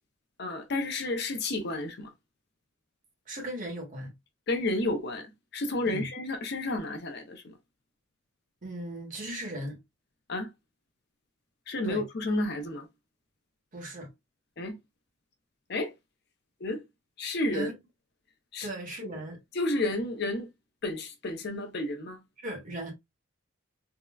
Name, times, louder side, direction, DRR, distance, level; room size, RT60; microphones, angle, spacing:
voice 1, 0.4-2.1 4.5-5.3 5.5-7.5 10.3-10.5 11.7-12.9 14.6-14.8 15.7-15.9 16.6-16.8 17.2-17.7 18.5-18.7 19.5-20.5 20.8-22.2, left 2 dB, 50° left, 0.6 m, -31 dB
voice 2, 3.3-4.1 5.8-6.1 8.6-9.8 11.8-12.0 13.7-14.1 17.5-17.7 18.6-19.4 22.4-22.9, right 1 dB, 40° right, 1.0 m, -37 dB
3.6 x 2.1 x 2.2 m
head